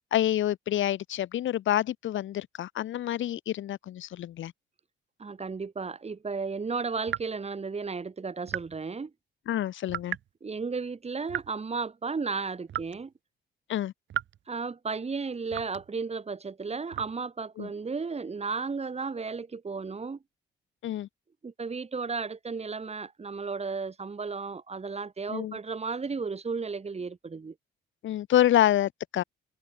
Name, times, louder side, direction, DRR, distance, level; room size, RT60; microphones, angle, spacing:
voice 1, 0.1-4.5 9.5-10.2 13.7-13.9 17.6-17.7 20.8-21.1 25.3-25.6 28.0-29.2, left 12 dB, 75° left, 3.5 m, -27 dB
voice 2, 5.2-9.1 10.4-13.1 14.5-20.2 21.4-27.5, right 4 dB, 30° right, 7.1 m, -34 dB
sound 1, 7.1-7.3 8.5-8.8 9.9-10.3 11.3-11.6 12.7-13.0 14.1-14.4 15.5-15.9 16.9-17.2, right 11 dB, 70° right, 2.8 m, -35 dB
cardioid pair, 90°, 20 cm